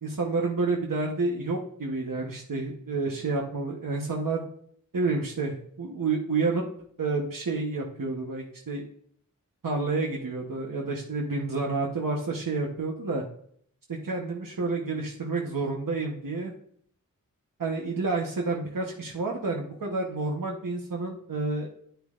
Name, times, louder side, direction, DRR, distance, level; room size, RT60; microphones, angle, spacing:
voice 1, 0.0-4.4 4.9-6.6 7.0-8.8 9.6-13.2 13.9-16.5 17.6-21.7, right 3 dB, 90° right, 0 dB, 1.1 m, -29 dB
10.0 x 9.4 x 2.5 m, 0.64 s
wide cardioid pair, 65°, 32 cm